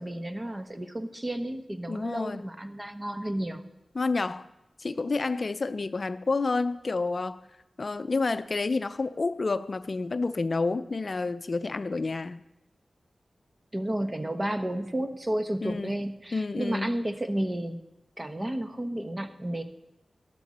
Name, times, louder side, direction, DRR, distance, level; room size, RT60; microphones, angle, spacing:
voice 1, 0.0-3.6 13.7-17.8 18.2-19.6, right 1 dB, 25° right, 8 dB, 1.1 m, -32 dB
voice 2, 1.9-2.5 3.9-4.5 4.8-7.4 7.8-12.4 15.6-16.0 16.3-16.9, left 3 dB, 55° left, 12 dB, 0.5 m, -29 dB
12.5 x 12.5 x 4.2 m, 0.89 s
cardioid pair, 55°, 0 cm